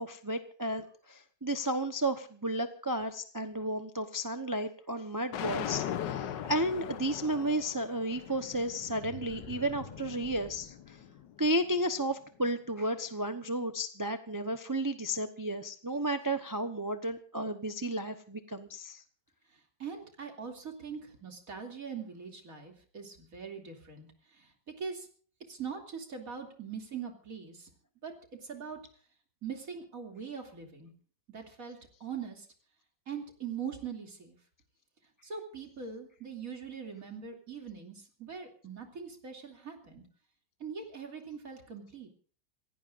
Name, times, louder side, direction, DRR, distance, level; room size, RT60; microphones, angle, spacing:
voice 1, 0.0-11.0 11.4-19.0, right 1 dB, 15° right, 7 dB, 0.7 m, -33 dB
sound 1, 5.3-11.5, left 10 dB, 80° left, 1.6 m, -40 dB
sound 2, 8.1-11.6, left 3 dB, 30° left, 1.2 m, -49 dB
voice 2, 19.5-25.1 25.5-27.7 28.0-28.1 28.4-28.8 29.4-30.9 31.3-32.5 33.1-34.4 35.2-40.0 40.6-42.1, right 6 dB, 50° right, 3 dB, 3.2 m, -42 dB
27.5 x 17.0 x 2.6 m, 0.43 s
omnidirectional pair, 1.9 m